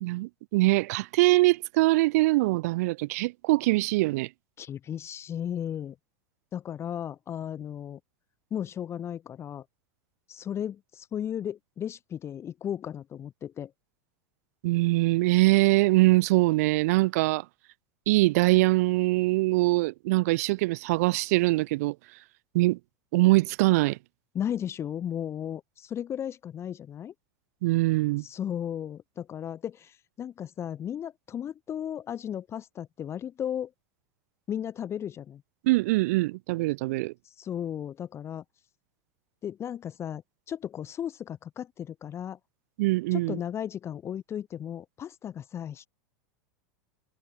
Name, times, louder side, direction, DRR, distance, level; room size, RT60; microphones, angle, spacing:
voice 1, 0.0-4.3 14.6-17.5 18.1-22.0 22.5-22.8 23.1-24.0 27.6-28.2 35.6-37.1 42.8-43.4, right 21 dB, 65° right, 0.4 m, -23 dB
voice 2, 4.6-6.0 6.5-8.0 8.5-9.6 10.3-13.7 24.3-27.1 28.2-33.7 34.5-35.4 37.2-38.4 39.4-40.2 40.5-42.4 43.1-45.9, left 9 dB, 30° left, 1.1 m, -35 dB
hypercardioid pair, 105°, 9 cm